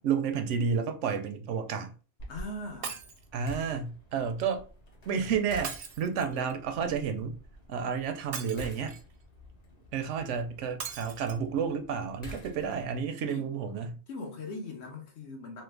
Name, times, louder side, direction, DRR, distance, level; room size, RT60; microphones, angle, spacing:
voice 1, 0.0-1.9 3.3-4.6 5.1-7.4 7.7-9.0 9.9-14.0, right 6 dB, 85° right, 0.9 m, -31 dB
sound 1, 2.2-13.1, equal, 40° left, 0.9 m, -49 dB
voice 2, 2.3-3.0 13.3-13.5 14.1-15.6, left 2 dB, 70° left, 1.1 m, -40 dB
Shatter, 2.8-3.3 5.6-6.5 8.3-9.1 10.8-11.4 12.0-12.1 12.4-12.5, right 6 dB, 60° right, 0.7 m, -40 dB
3.3 x 2.1 x 3.3 m
omnidirectional pair, 1.2 m